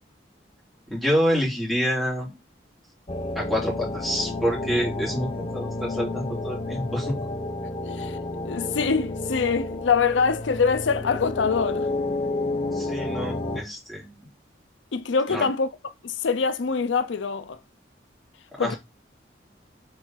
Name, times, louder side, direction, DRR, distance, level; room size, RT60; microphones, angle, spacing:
voice 1, 0.9-2.3 3.3-7.1 12.7-14.2 15.3-15.5 18.5-18.8, equal, ahead, 3.2 m, -27 dB
sound 1, 3.1-13.6, left 2 dB, 30° left, 1.1 m, -31 dB
voice 2, 7.9-8.2 8.4-11.9 14.9-15.7 16.0-17.6 18.6-18.7, left 5 dB, 90° left, 0.5 m, -24 dB
4.8 x 4.7 x 5.7 m
head